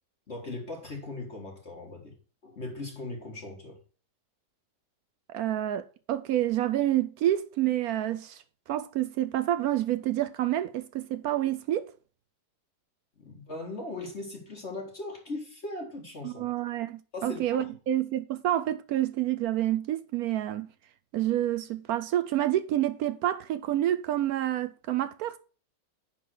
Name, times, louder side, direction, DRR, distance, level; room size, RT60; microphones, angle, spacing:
voice 1, 0.3-2.1 2.4-3.8 13.2-16.5 17.1-17.7, left 2 dB, 40° left, 1.9 m, -39 dB
voice 2, 5.3-8.4 8.7-11.9 16.2-20.7 21.1-25.4, right 13 dB, 75° right, 0.9 m, -28 dB
10.0 x 3.8 x 6.1 m
omnidirectional pair, 2.0 m